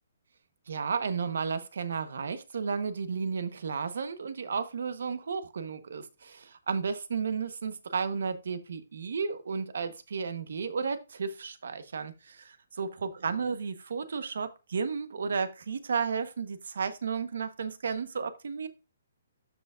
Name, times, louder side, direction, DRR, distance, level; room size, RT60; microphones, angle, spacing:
voice 1, 0.7-18.7, right 5 dB, 70° right, 1.2 m, -33 dB
13.0 x 4.9 x 2.5 m
hypercardioid pair, 175°, 0 cm